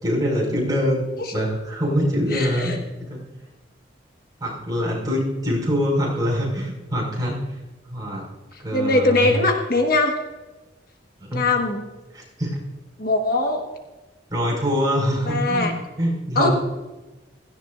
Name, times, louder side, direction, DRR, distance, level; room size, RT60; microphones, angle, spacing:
voice 1, 0.0-2.7 3.0-3.2 4.4-7.4 7.9-8.3 8.6-9.4 11.2-11.5 12.1-12.6 14.3-16.5, equal, 20° right, -3 dB, 5.3 m, -24 dB
voice 2, 2.3-2.8 8.7-10.1 11.3-11.8 13.0-13.6 15.3-15.7 16.3-16.5, left 2 dB, 50° left, 3 dB, 1.5 m, -21 dB
17.0 x 15.5 x 2.6 m, 1.1 s
head